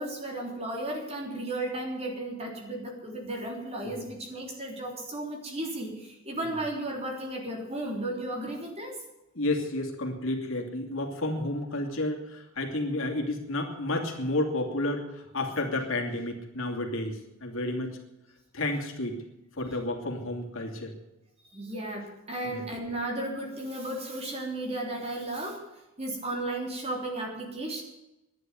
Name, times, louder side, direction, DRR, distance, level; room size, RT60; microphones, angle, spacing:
voice 1, 0.0-9.0 21.5-25.6 26.0-27.8, right 1 dB, 30° right, 1 dB, 3.5 m, -34 dB
voice 2, 9.3-18.0 18.5-19.2 19.6-20.9 22.4-22.6, left 2 dB, 65° left, 1 dB, 2.8 m, -31 dB
11.0 x 11.0 x 9.4 m, 0.94 s
head